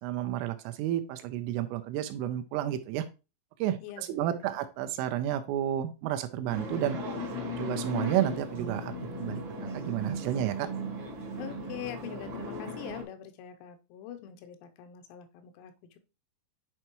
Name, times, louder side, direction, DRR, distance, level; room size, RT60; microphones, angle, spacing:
voice 1, 0.0-3.1 3.6-7.0 7.6-8.9 9.2-9.4 9.7-10.7, right 12 dB, 85° right, 9 dB, 3.0 m, -31 dB
voice 2, 3.8-4.6 11.4-16.0, left 10 dB, 90° left, 7 dB, 3.5 m, -44 dB
sound 1, 6.5-13.0, left 1 dB, 65° right, 1.3 m, -37 dB
9.9 x 4.5 x 3.0 m, 0.29 s
omnidirectional pair, 6.0 m